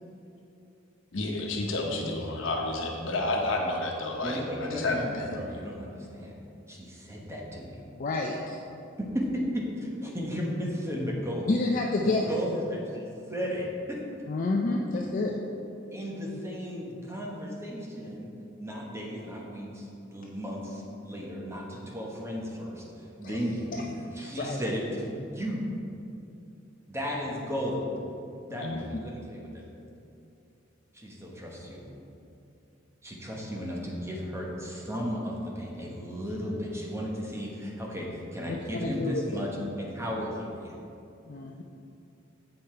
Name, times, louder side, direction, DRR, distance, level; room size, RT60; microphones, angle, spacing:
voice 1, 1.1-5.4 28.6-28.8, left 2 dB, 80° left, 0 dB, 1.0 m, -30 dB
voice 2, 4.2-6.4 6.7-7.8 9.1-11.5 12.0-14.0 14.7-15.1 15.9-18.3 18.6-23.8 24.1-25.7 26.9-27.8 28.5-29.6 30.9-31.9 33.0-40.7, equal, 15° right, -3 dB, 1.1 m, -35 dB
voice 3, 8.0-8.6 11.5-12.3 14.3-15.4 23.2-23.4 23.7-23.8 24.2-24.6 28.5-29.0 38.5-39.4 41.3-41.6, left 2 dB, 45° left, 0 dB, 0.4 m, -30 dB
7.9 x 5.4 x 4.4 m, 2.7 s
head